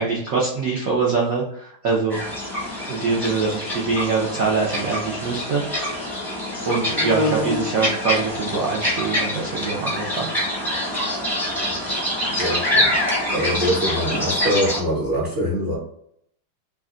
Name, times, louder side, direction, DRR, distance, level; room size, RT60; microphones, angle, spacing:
voice 1, 0.0-2.2 2.9-6.3 6.6-10.3, right 4 dB, 85° right, -4 dB, 0.7 m, -24 dB
sound 1, 2.1-14.8, left 1 dB, 5° left, 0.3 m, -25 dB
voice 2, 12.4-13.0 13.3-15.7, equal, 40° right, -6 dB, 0.8 m, -23 dB
3.4 x 2.2 x 3.6 m, 0.67 s
omnidirectional pair, 2.4 m